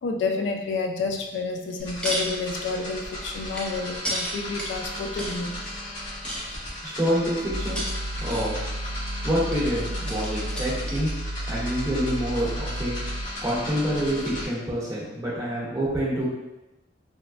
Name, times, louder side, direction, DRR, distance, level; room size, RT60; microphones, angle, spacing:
voice 1, 0.0-5.6, left 4 dB, 85° left, 4 dB, 0.3 m, -29 dB
sound 1, 1.6-2.3 2.7-5.4 6.2-7.0 7.6-8.7 9.5-11.1 11.4-11.5, equal, 5° left, 0.4 m, -33 dB
sound 2, 1.8-14.5, left 1 dB, 50° left, 1.3 m, -36 dB
voice 2, 6.8-7.8 8.2-8.6 9.2-11.1 11.5-13.0 13.4-16.2, equal, 20° right, -9 dB, 0.9 m, -27 dB
sound 3, 7.5-13.2, right 1 dB, 55° right, 0.5 m, -32 dB
3.2 x 2.1 x 2.4 m, 0.99 s
head